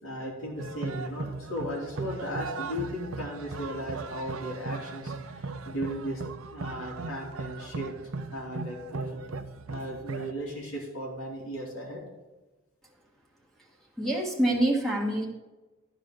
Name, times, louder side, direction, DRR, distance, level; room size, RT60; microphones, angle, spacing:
voice 1, 0.0-6.2 6.5-7.9 8.3-9.2 9.7-12.0, equal, 90° left, -3 dB, 3.3 m, -36 dB
sound 1, 0.6-10.3, right 3 dB, 90° right, 0.8 m, -38 dB
voice 2, 14.0-15.3, right 1 dB, ahead, 0 dB, 1.4 m, -26 dB
11.5 x 5.0 x 6.6 m, 1.1 s
head